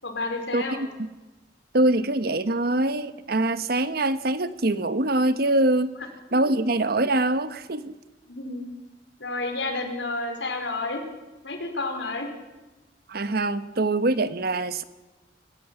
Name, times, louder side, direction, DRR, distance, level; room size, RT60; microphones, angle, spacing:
voice 1, 0.0-0.9 8.3-8.7 9.2-11.0 11.4-12.3, left 2 dB, 90° left, 4 dB, 5.0 m, -30 dB
voice 2, 0.5-1.1 1.7-5.9 6.3-7.9 13.1-14.8, right 2 dB, 60° right, 12 dB, 1.2 m, -24 dB
25.0 x 15.5 x 9.0 m, 1.1 s
head